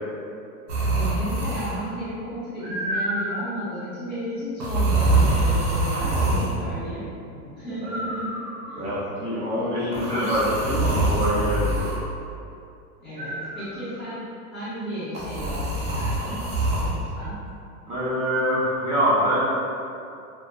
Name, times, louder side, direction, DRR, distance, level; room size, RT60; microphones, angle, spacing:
sound 1, 0.7-1.9 2.6-3.5 4.6-6.6 7.8-8.8 9.9-12.0 13.2-13.9 15.1-17.0 18.3-18.8, right 2 dB, 85° right, 0.8 m, -25 dB
voice 1, 0.9-7.1 7.6-8.3 8.7-9.0 9.4-10.5 13.0-14.3 14.5-16.4 16.8-17.4, equal, ahead, -13 dB, 0.8 m, -33 dB
voice 2, 8.7-11.9 17.9-19.4, equal, 15° right, -11 dB, 0.5 m, -25 dB
2.4 x 2.1 x 2.7 m, 2.6 s
supercardioid pair, 145°, 45 cm